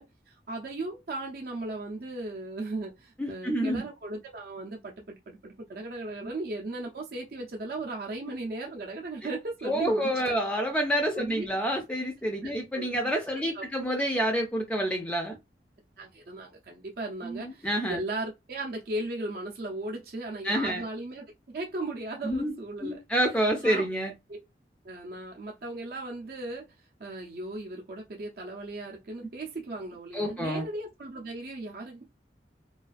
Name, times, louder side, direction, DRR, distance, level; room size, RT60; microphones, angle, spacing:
voice 1, 0.0-10.4 11.1-11.5 12.4-13.2 13.5-13.6 16.0-21.2 21.5-23.0 23.6-23.9 24.3-24.4 24.8-26.7 27.0-32.0, right 2 dB, 55° right, 0.5 m, -37 dB
voice 2, 3.2-3.8 9.6-15.4 17.2-18.0 20.4-20.8 22.2-22.5 22.8-24.1 30.1-30.6, equal, 5° left, 0.3 m, -28 dB
2.3 x 2.3 x 2.4 m
head